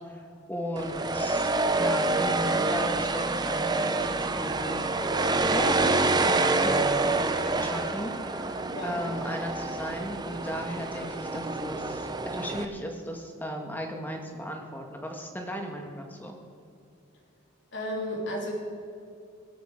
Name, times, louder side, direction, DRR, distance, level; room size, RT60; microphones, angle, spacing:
voice 1, 0.1-4.8 5.4-16.4, equal, 10° left, 2 dB, 1.7 m, -36 dB
sound 1, 0.8-12.7, right 3 dB, 20° right, 0.7 m, -27 dB
voice 2, 8.7-9.0 17.7-18.5, left 1 dB, 55° left, -1 dB, 3.4 m, -33 dB
24.5 x 8.6 x 5.1 m, 2.6 s
head